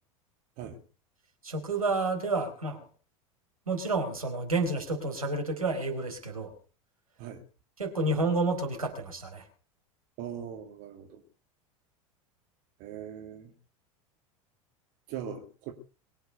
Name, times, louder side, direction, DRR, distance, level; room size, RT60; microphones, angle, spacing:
voice 1, 1.4-2.8 3.7-6.5 7.8-9.4, right 3 dB, 80° right, 3 dB, 4.3 m, -30 dB
voice 2, 10.2-11.2 12.8-13.5 15.1-15.7, right 8 dB, 50° right, 4 dB, 2.4 m, -40 dB
23.0 x 8.0 x 6.7 m, 0.39 s
figure-of-eight pair, 80°, 18 cm